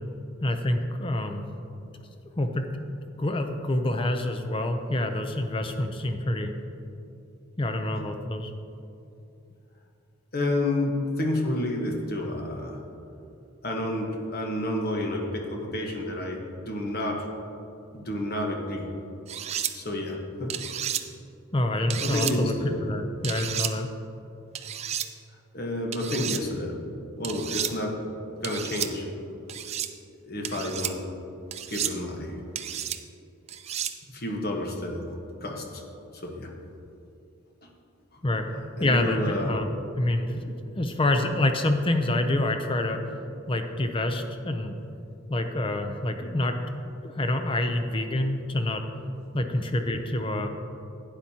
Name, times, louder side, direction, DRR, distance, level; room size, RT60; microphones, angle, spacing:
voice 1, 0.4-1.5 2.4-2.7 3.2-6.5 7.6-8.5 21.5-22.5 22.8-23.9 38.2-38.5 38.8-43.0 43.5-44.8 45.3-46.6 47.0-48.8 49.3-50.5, left 1 dB, 25° left, 6 dB, 0.5 m, -27 dB
voice 2, 10.3-12.8 13.6-17.2 17.9-18.9 19.7-20.6 22.0-22.9 25.5-26.8 27.2-28.0 28.4-29.1 30.2-31.0 31.7-32.4 34.1-35.0 35.4-35.8 36.1-36.5 38.8-39.5 49.1-49.2, left 1 dB, 45° left, 1 dB, 1.2 m, -30 dB
sound 1, 19.3-19.7 20.5-21.0 21.9-22.4 23.2-23.7 24.6-25.1 25.9-26.4 27.2-27.7 28.4-28.9 29.5-29.9 30.4-30.9 31.5-31.9 32.6-33.0 33.5-33.9, right 10 dB, 30° right, 0.3 m, -31 dB
11.5 x 9.1 x 2.8 m, 2.7 s
head